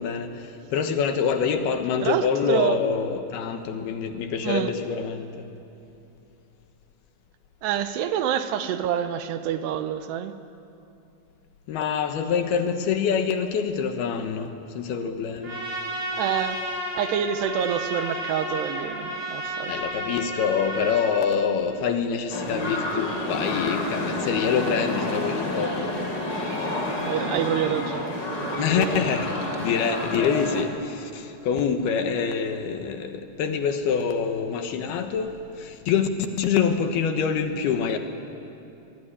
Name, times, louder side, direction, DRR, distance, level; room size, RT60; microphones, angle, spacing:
voice 1, 0.0-5.5 11.7-15.6 19.7-25.9 28.6-36.1 36.4-38.0, left 6 dB, 65° left, 7 dB, 2.7 m, -26 dB
voice 2, 2.0-2.8 4.4-4.7 7.6-10.3 16.2-16.6 16.9-19.8 27.0-29.1, right 9 dB, 75° right, 10 dB, 2.6 m, -27 dB
Trumpet, 15.4-21.2, equal, 25° right, 5.7 m, -32 dB
sound 1, 22.3-30.6, left 1 dB, 25° left, 3.0 m, -29 dB
25.0 x 22.0 x 10.0 m, 2.7 s
omnidirectional pair, 5.7 m